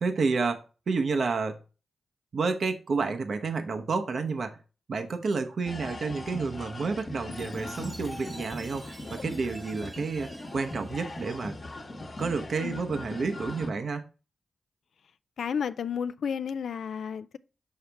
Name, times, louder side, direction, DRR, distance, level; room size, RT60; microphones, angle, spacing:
voice 1, 0.0-1.6 2.3-4.6 4.9-11.6 12.2-14.1, right 4 dB, 65° right, 0.8 m, -30 dB
sound 1, 5.7-13.7, left 1 dB, 45° left, 1.1 m, -39 dB
Chime, 7.3-11.9, right 2 dB, 30° right, 1.0 m, -50 dB
voice 2, 15.4-17.4, left 7 dB, 80° left, 0.3 m, -32 dB
5.6 x 5.6 x 3.4 m
cardioid pair, 55°, 0 cm